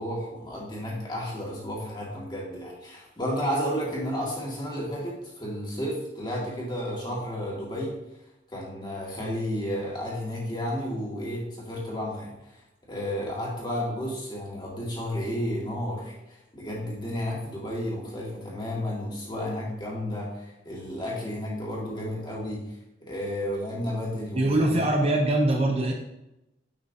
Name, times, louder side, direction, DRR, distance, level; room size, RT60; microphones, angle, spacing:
voice 1, 0.0-8.0 8.5-12.4 12.9-22.6 23.1-24.8, equal, 25° left, -4 dB, 2.0 m, -32 dB
voice 2, 24.3-25.9, right 1 dB, 35° right, 1 dB, 0.7 m, -23 dB
9.8 x 5.7 x 2.8 m, 0.92 s
head